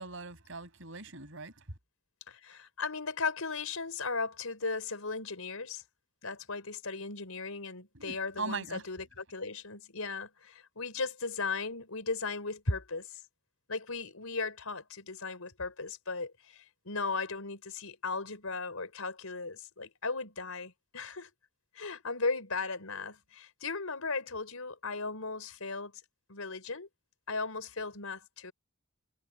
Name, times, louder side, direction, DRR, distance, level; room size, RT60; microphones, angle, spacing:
voice 1, 0.0-1.5 7.9-8.8, right 3 dB, 65° right, 5.8 m, -40 dB
voice 2, 2.3-5.8 6.2-13.2 13.7-21.3 21.7-25.9 26.3-26.9 27.3-28.5, left 4 dB, 85° left, 4.6 m, -37 dB
head